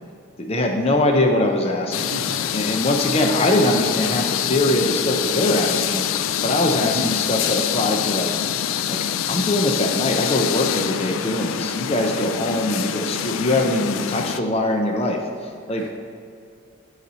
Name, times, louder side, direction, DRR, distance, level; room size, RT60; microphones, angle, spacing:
voice 1, 0.4-2.1 2.5-8.4 8.9-9.0 9.3-15.9, left 1 dB, 30° left, 3 dB, 0.6 m, -22 dB
sound 1, 1.9-14.4, left 9 dB, 75° left, 0.3 m, -25 dB
voice 2, 1.9-2.6 6.8-7.1 15.7-15.9, right 1 dB, 70° right, -1 dB, 0.5 m, -34 dB
12.0 x 4.1 x 4.3 m, 2.4 s
head